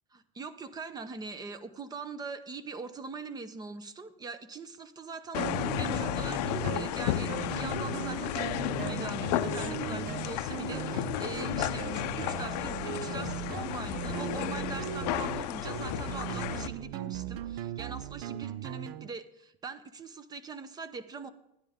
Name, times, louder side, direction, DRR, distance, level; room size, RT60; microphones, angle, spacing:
voice 1, 0.1-21.3, right 4 dB, 20° right, 13 dB, 0.7 m, -42 dB
sound 1, 5.3-16.7, left 15 dB, 80° left, 0.5 m, -33 dB
sound 2, 5.4-19.1, right 13 dB, 75° right, 0.5 m, -38 dB
12.0 x 10.0 x 3.6 m, 0.83 s
supercardioid pair, 135°, 20 cm